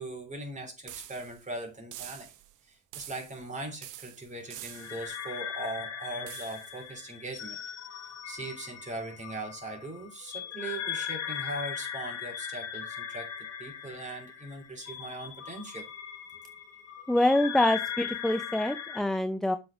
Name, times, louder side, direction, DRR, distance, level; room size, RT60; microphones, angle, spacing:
voice 1, 0.0-2.3 2.7-7.6 7.9-13.3 13.6-15.8, right 2 dB, 25° right, 3.3 m, -40 dB
sound 1, 0.9-1.5 1.9-2.5 2.9-3.5 3.8-5.1 6.3-6.8, right 12 dB, 85° right, 0.8 m, -46 dB
sound 2, 4.6-19.0, left 8 dB, 60° left, 1.2 m, -39 dB
voice 2, 17.1-19.6, left 1 dB, ahead, 0.6 m, -25 dB
7.6 x 4.4 x 4.7 m
cardioid pair, 90°, 30 cm